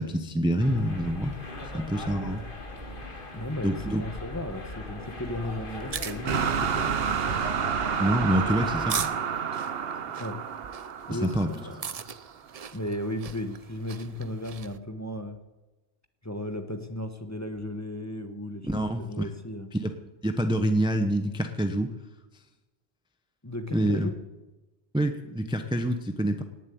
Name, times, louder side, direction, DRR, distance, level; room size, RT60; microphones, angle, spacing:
voice 1, 0.0-1.3 1.7-2.4 3.6-4.0 8.0-9.1 11.1-11.5 18.6-19.3 19.7-19.9 20.2-21.9 23.7-24.1 24.9-26.4, right 1 dB, 5° right, 6 dB, 0.9 m, -26 dB
sound 1, 0.6-9.0, left 1 dB, 50° left, 1.9 m, -39 dB
voice 2, 3.3-7.2 10.2-10.4 11.1-11.4 11.6-12.0 12.7-15.4 16.2-19.7 23.4-24.1, left 1 dB, 15° left, 6 dB, 1.1 m, -35 dB
sound 2, 5.7-14.8, right 7 dB, 45° right, 0.5 m, -40 dB
sound 3, 6.3-12.3, right 7 dB, 60° right, 1.0 m, -30 dB
18.5 x 7.5 x 9.4 m, 1.1 s
omnidirectional pair, 1.2 m